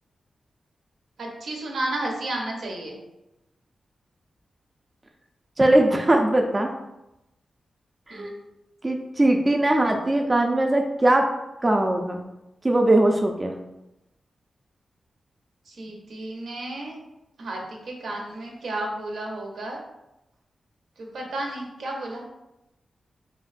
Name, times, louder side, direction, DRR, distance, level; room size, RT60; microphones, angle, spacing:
voice 1, 1.2-3.0 8.1-8.3 15.7-17.0 17.4-19.8 21.0-22.2, right 1 dB, 85° right, 0 dB, 0.6 m, -32 dB
voice 2, 5.6-6.7 8.1-8.3 8.8-11.3 11.6-12.2 12.6-13.5, right 1 dB, 30° right, 3 dB, 0.3 m, -20 dB
3.4 x 2.2 x 2.4 m, 0.92 s
cardioid pair, 65°, 0 cm